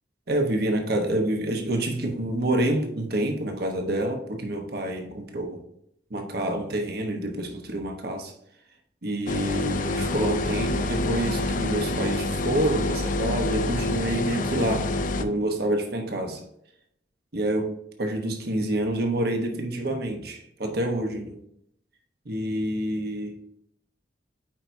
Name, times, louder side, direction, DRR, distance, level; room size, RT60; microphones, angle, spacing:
voice 1, 0.3-5.6 6.1-8.3 9.0-14.9 15.2-16.4 17.3-21.4 22.2-23.3, right 1 dB, 60° right, 1.1 m, -27 dB
sound 1, 9.3-15.2, left 2 dB, 50° left, 0.5 m, -27 dB
9.0 x 4.6 x 2.7 m
head